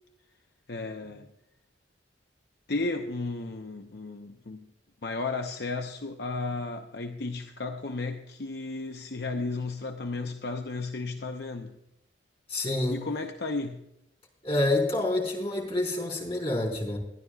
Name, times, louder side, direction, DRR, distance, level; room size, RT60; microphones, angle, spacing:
voice 1, 0.7-1.3 2.7-4.7 5.0-11.8 12.9-13.9, left 3 dB, 60° left, 0.7 m, -34 dB
voice 2, 12.5-13.0 14.4-17.0, left 2 dB, 30° left, 4.5 m, -27 dB
23.0 x 11.0 x 2.4 m
head